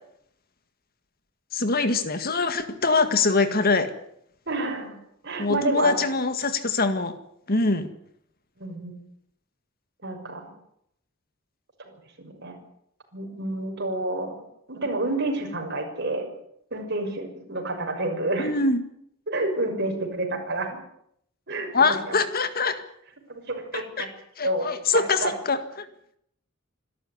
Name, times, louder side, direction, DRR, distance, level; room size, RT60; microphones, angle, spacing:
voice 1, 1.5-3.9 5.4-7.2 7.5-7.9 18.4-18.8 21.7-22.8 23.7-24.1 24.4-25.9, left 3 dB, 45° left, 10 dB, 1.9 m, -23 dB
voice 2, 4.5-5.0 5.2-6.0 8.6-8.9 10.0-10.5 11.8-11.9 12.2-12.6 13.1-14.4 14.7-16.2 16.7-18.5 19.3-20.8 21.5-22.1 23.3-24.1 24.4-24.7 25.2-25.3, right 2 dB, 55° right, 3 dB, 6.3 m, -29 dB
26.0 x 13.5 x 9.7 m, 0.72 s
head